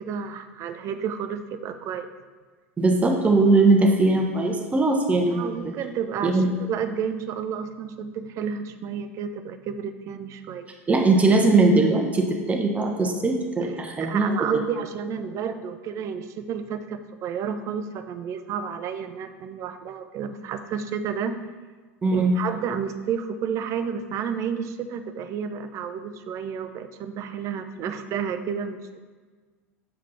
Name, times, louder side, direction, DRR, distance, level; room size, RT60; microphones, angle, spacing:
voice 1, 0.0-2.1 5.2-10.7 14.0-21.4 22.1-29.0, right 7 dB, 40° right, 9 dB, 0.6 m, -31 dB
voice 2, 2.8-5.7 6.2-6.5 10.9-14.5 22.0-22.3, right 3 dB, 20° right, 2 dB, 1.2 m, -20 dB
8.0 x 5.1 x 4.2 m, 1.4 s
figure-of-eight pair, 85°, 8 cm